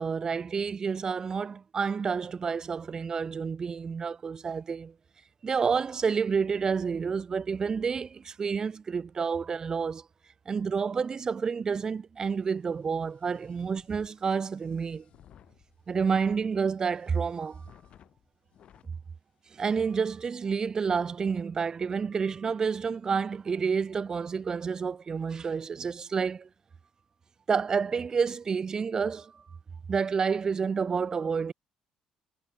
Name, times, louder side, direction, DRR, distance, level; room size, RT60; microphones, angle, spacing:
voice 1, 0.0-4.9 5.4-10.0 10.5-15.0 15.9-17.7 19.5-26.5 27.5-29.4 29.9-31.5, right 5 dB, 35° right, 0.5 m, -29 dB
sound 1, 12.2-18.9 19.5-19.6 19.8-20.3, left 10 dB, 60° left, 5.1 m, -60 dB
cardioid pair, 105°, 2 cm